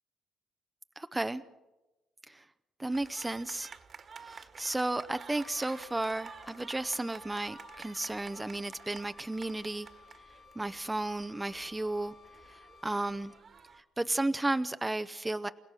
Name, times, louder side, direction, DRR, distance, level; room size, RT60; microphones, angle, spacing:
voice 1, 1.0-1.4 2.3-2.4 2.8-3.7 4.2-9.9 10.6-12.1 12.5-13.3 14.0-15.5, right 2 dB, 15° right, 10 dB, 0.7 m, -33 dB
sound 1, 2.9-13.8, right 5 dB, 45° right, 1.6 m, -51 dB
Wind instrument woodwind instrument, 5.3-13.6, left 6 dB, 55° left, 2.2 m, -57 dB
29.0 x 16.5 x 6.3 m, 1.1 s
cardioid pair, 90°, 0 cm